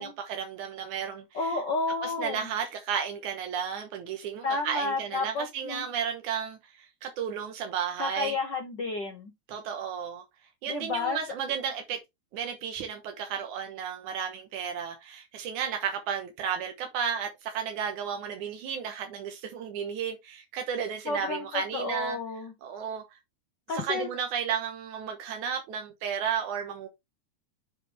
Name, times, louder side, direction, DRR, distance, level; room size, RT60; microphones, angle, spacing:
voice 1, 0.0-1.6 2.0-8.3 9.5-10.2 10.6-12.0 12.3-22.2 22.6-23.0 23.7-26.9, right 7 dB, 90° right, 2.6 m, -33 dB
voice 2, 1.3-2.5 4.4-5.9 8.0-9.3 10.7-11.2 21.1-22.5 23.7-24.1, left 3 dB, 70° left, 1.0 m, -31 dB
7.5 x 4.9 x 3.3 m
omnidirectional pair, 3.4 m